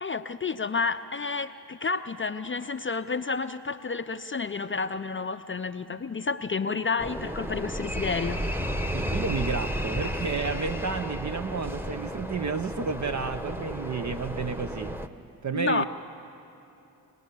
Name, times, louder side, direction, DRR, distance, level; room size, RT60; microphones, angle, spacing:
voice 1, 0.0-8.4 15.5-15.9, left 4 dB, 25° left, 10 dB, 0.7 m, -30 dB
sound 1, 7.0-15.1, equal, 5° right, 1.3 m, -33 dB
voice 2, 8.9-15.0 15.4-15.9, right 5 dB, 40° right, 8 dB, 0.9 m, -31 dB
23.0 x 18.0 x 8.4 m, 2.8 s
hypercardioid pair, 40°, 46 cm